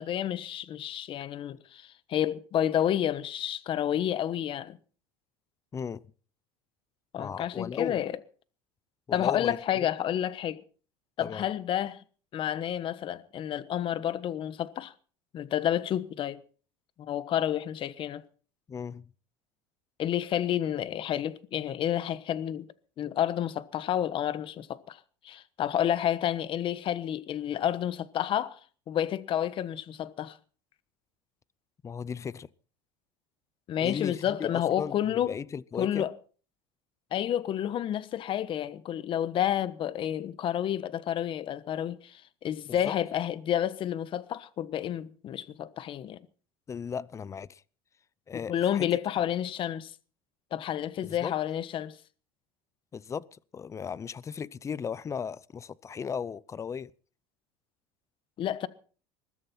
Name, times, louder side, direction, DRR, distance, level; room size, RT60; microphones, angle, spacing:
voice 1, 0.0-4.8 7.1-8.1 9.1-10.6 11.2-12.0 12.3-14.9 15.3-16.4 17.0-18.2 20.0-22.7 23.0-28.6 28.9-30.4 33.7-35.3 35.8-36.1 37.1-46.2 48.5-49.9 50.5-52.0 58.4-58.7, left 10 dB, 45° left, 1.2 m, -30 dB
voice 2, 5.7-6.0 7.2-8.0 9.1-9.9 11.2-11.5 18.7-19.1 31.8-32.5 33.8-36.1 42.6-43.0 46.7-47.6 48.3-48.9 51.0-51.3 52.9-56.9, left 6 dB, 25° left, 0.6 m, -36 dB
21.0 x 13.0 x 4.4 m
supercardioid pair, 115°, 12 cm